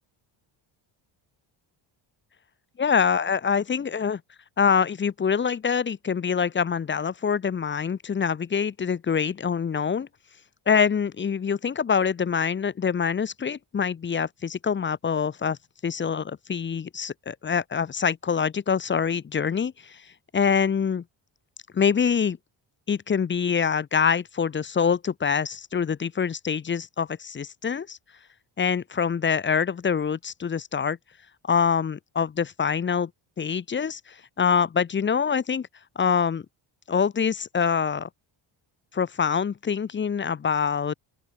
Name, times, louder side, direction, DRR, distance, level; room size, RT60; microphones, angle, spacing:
voice 1, 2.8-4.2 4.6-10.1 10.7-15.6 15.8-20.0 20.3-21.0 21.7-22.4 22.9-28.0 28.6-31.0 31.5-33.1 33.4-34.0 34.4-35.7 36.0-36.4 36.9-38.1 38.9-40.9, left 6 dB, 25° left, 0.6 m, -25 dB
open air
cardioid pair, 165°, 49 cm